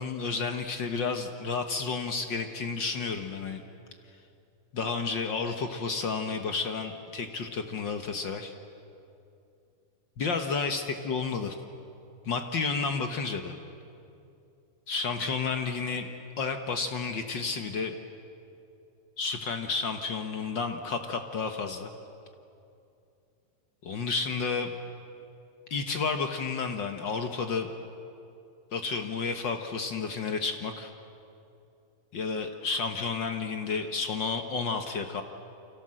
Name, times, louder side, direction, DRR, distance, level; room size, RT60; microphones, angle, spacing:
voice 1, 0.0-3.6 4.7-8.5 10.2-11.5 12.2-13.6 14.9-16.1 16.4-17.9 19.2-21.9 23.8-24.7 25.7-27.7 28.7-30.9 32.1-35.2, left 4 dB, 55° left, 6 dB, 1.3 m, -31 dB
29.0 x 26.0 x 7.7 m, 2.6 s
omnidirectional pair, 3.6 m